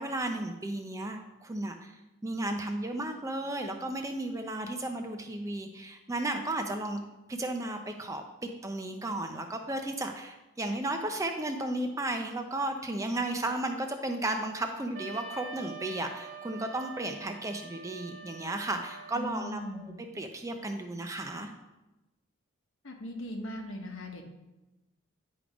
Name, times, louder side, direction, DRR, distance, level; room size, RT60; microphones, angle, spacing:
voice 1, 0.0-2.0 2.2-7.0 7.3-8.2 8.6-19.6 20.1-21.5, right 1 dB, 15° right, 5 dB, 0.4 m, -34 dB
Wind instrument woodwind instrument, 14.9-19.8, right 4 dB, 60° right, 1.1 m, -46 dB
voice 2, 19.1-19.9 22.8-24.2, equal, 70° left, 3 dB, 1.1 m, -38 dB
9.6 x 3.5 x 5.0 m, 1.0 s
head